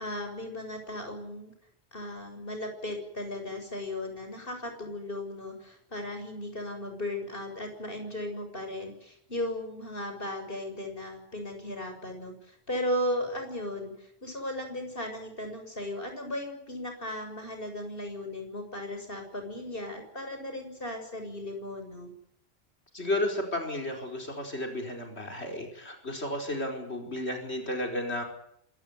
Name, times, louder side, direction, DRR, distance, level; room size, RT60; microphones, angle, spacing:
voice 1, 0.0-1.5 1.9-22.1, left 1 dB, 55° left, 5 dB, 7.0 m, -36 dB
voice 2, 22.9-28.2, left 1 dB, 75° left, 3 dB, 5.3 m, -33 dB
26.5 x 16.0 x 9.8 m, 0.71 s
omnidirectional pair, 1.1 m